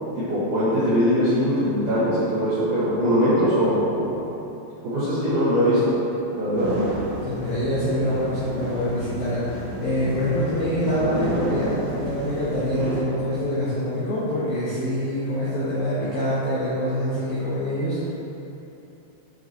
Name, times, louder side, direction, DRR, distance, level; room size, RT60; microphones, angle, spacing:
voice 1, 0.1-4.2 4.8-6.0 6.4-6.7, equal, 60° right, -14 dB, 2.1 m, -21 dB
sound 1, 6.6-13.0, right 2 dB, 75° right, 2.8 m, -31 dB
voice 2, 7.2-18.1, equal, 85° left, -10 dB, 2.1 m, -25 dB
7.5 x 5.8 x 3.0 m, 3.0 s
omnidirectional pair, 5.6 m